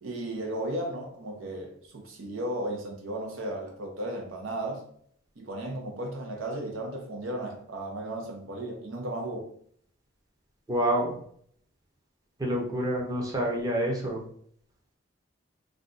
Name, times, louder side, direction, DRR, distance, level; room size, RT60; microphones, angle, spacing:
voice 1, 0.0-4.8 5.4-9.5, right 1 dB, 90° right, 0.7 m, -35 dB
voice 2, 10.7-11.1 12.4-14.2, right 1 dB, 20° right, 0.6 m, -27 dB
2.5 x 2.2 x 3.8 m
head